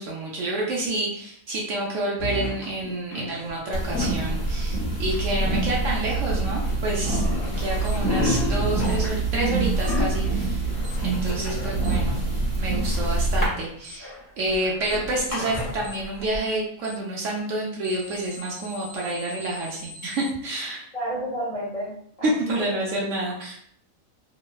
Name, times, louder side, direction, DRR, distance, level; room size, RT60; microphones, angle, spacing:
voice 1, 0.0-10.7 11.0-12.2 12.6-14.1 14.4-20.8 22.2-23.6, right 1 dB, 70° right, -2 dB, 0.9 m, -29 dB
sound 1, 2.2-3.6 5.1-6.0 6.3-16.4, left 1 dB, 15° left, 0.6 m, -31 dB
sound 2, 3.7-13.5, right 3 dB, 40° left, 1.0 m, -26 dB
Alarm, 7.8-7.9 8.8-8.9 9.8-9.9 10.8-10.9 11.8-11.9 12.8-12.9 13.8-13.9 14.8-14.9 15.8-15.9 16.8-16.9 17.8-20.3, equal, 85° right, 1.4 m, -43 dB
voice 2, 11.3-11.6 20.9-22.6, right 1 dB, 75° left, -7 dB, 0.3 m, -32 dB
3.0 x 2.1 x 2.3 m, 0.66 s
omnidirectional pair, 1.4 m